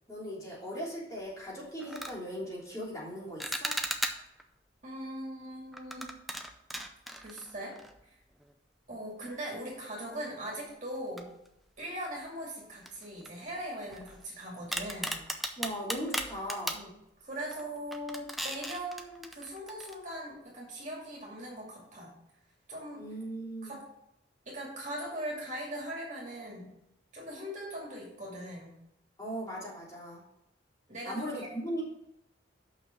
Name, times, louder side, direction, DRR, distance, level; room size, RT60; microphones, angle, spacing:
voice 1, 0.1-3.7 15.6-16.8 23.0-23.8 29.2-30.2 31.1-31.8, equal, 20° left, -8 dB, 3.4 m, -38 dB
sound 1, 1.2-1.4 1.8-2.2 3.4-4.4 5.7-8.1 8.4-8.5 9.3-9.4 11.2-11.8 12.2-12.3 12.8-14.3 14.7-16.9 17.4-17.6 17.9-19.9, equal, ahead, 0.5 m, -37 dB
voice 2, 4.8-6.1 7.2-7.8 8.9-11.3 11.8-15.2 16.7-16.9 17.2-22.1 22.7-23.0 23.6-23.8 24.4-26.7 27.1-28.7 30.9-31.5, right 1 dB, 40° right, -4 dB, 2.5 m, -40 dB
6.5 x 5.7 x 6.4 m, 0.81 s
head